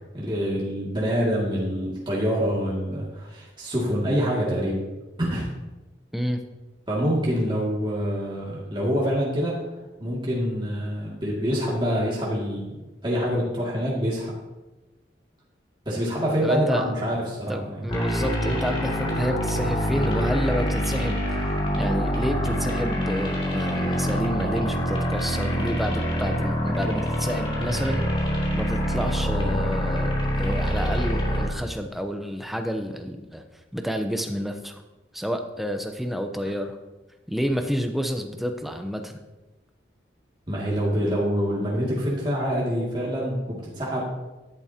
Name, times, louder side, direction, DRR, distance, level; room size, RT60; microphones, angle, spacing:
voice 1, 0.1-4.8 5.2-5.5 6.9-9.5 10.0-12.7 13.0-14.3 15.9-17.8 40.5-44.0, equal, 25° right, -6 dB, 2.3 m, -26 dB
voice 2, 16.4-16.9 17.5-21.4 21.7-28.0 28.5-33.4 33.7-34.8 35.1-36.8 37.3-39.1, equal, ahead, 5 dB, 0.8 m, -29 dB
sound 1, 17.9-31.4, equal, 30° left, 2.9 m, -25 dB
13.0 x 11.0 x 2.9 m, 1.1 s
head